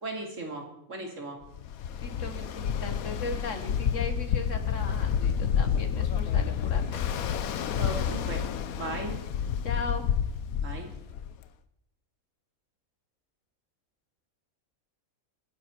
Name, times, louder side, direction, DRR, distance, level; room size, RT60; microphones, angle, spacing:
voice 1, 0.0-1.4 7.7-8.4 8.8-9.2 10.6-10.9, right 2 dB, 65° right, 2 dB, 3.1 m, -37 dB
Ocean, 1.5-11.4, left 8 dB, 90° left, 1.3 m, -29 dB
voice 2, 2.0-7.1 9.6-10.1, left 3 dB, 60° left, 7 dB, 2.0 m, -38 dB
29.0 x 9.9 x 4.4 m, 0.80 s
omnidirectional pair, 1.4 m